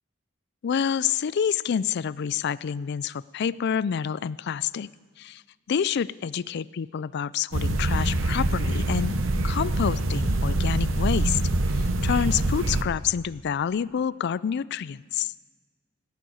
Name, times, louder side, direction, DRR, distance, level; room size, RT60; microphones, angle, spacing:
voice 1, 0.6-4.9 5.2-5.4 5.7-9.1 9.4-11.4 11.7-15.3, left 7 dB, 55° left, 20 dB, 0.4 m, -28 dB
sound 1, 7.5-12.8, right 2 dB, 70° right, 1.0 m, -25 dB
16.5 x 9.1 x 8.6 m, 1.4 s
head